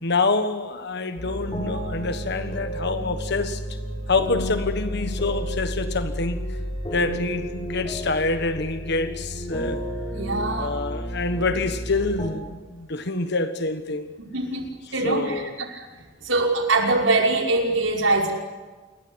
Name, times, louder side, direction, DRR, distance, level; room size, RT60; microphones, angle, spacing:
voice 1, 0.0-3.8 4.1-6.6 6.9-9.8 10.6-14.1 15.0-15.5, left 3 dB, 60° left, 1.4 m, -26 dB
sound 1, 1.2-12.3, equal, 30° left, 7.7 m, -31 dB
voice 2, 10.1-10.8 14.2-14.6 14.9-15.8 16.2-18.3, right 2 dB, 75° right, 5.7 m, -23 dB
29.0 x 22.5 x 8.1 m
head